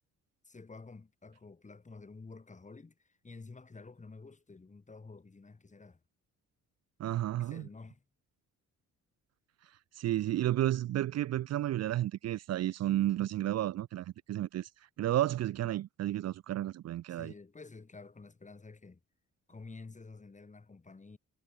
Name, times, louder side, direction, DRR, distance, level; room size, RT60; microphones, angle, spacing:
voice 1, 0.4-6.0 7.3-8.0 17.1-19.0 19.5-21.2, left 3 dB, 25° left, 4.3 m, -50 dB
voice 2, 7.0-7.7 9.9-14.7 15.0-17.3, right 13 dB, 60° right, 0.6 m, -32 dB
cardioid pair, 90°, 30 cm